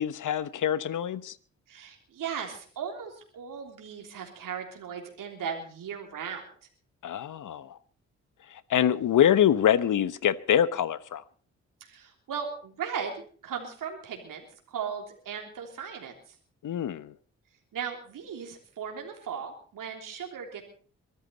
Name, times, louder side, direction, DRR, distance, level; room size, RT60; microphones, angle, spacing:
voice 1, 0.0-1.3 7.0-7.8 8.5-11.2 16.6-17.1, left 10 dB, 60° left, 1.1 m, -25 dB
voice 2, 1.7-6.5 11.8-16.4 17.7-20.6, right 7 dB, 65° right, 3.5 m, -37 dB
23.5 x 13.0 x 4.2 m
hypercardioid pair, 40°, 35 cm